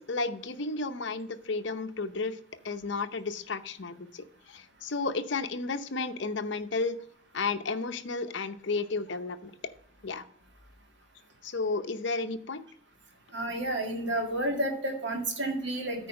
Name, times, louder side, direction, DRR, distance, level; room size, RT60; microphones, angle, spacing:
voice 1, 0.0-2.4 2.6-7.0 7.3-9.5 10.0-10.3 11.4-12.6, left 3 dB, 60° left, 9 dB, 0.7 m, -33 dB
voice 2, 13.3-16.1, right 1 dB, 60° right, 2 dB, 1.9 m, -31 dB
9.1 x 4.7 x 6.4 m, 0.63 s
head